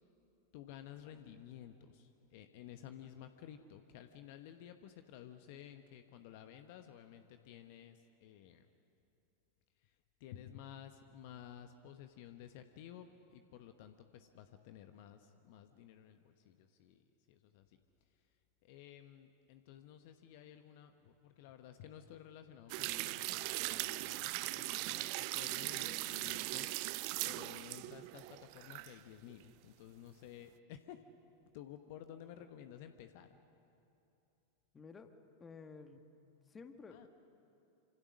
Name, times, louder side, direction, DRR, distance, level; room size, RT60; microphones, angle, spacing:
voice 1, 0.5-8.7 9.8-9.9 10.2-17.8 18.6-26.8 27.2-31.0 31.5-33.4 36.9-37.1, left 10 dB, 50° left, 8 dB, 1.0 m, -54 dB
sound 1, 22.7-28.9 29.3-29.4, right 21 dB, 45° right, 0.5 m, -39 dB
voice 2, 34.7-35.1 35.4-36.1 36.5-37.1, left 4 dB, 20° left, 8 dB, 1.6 m, -53 dB
27.5 x 26.0 x 6.3 m, 2.8 s
figure-of-eight pair, 90°, 0 cm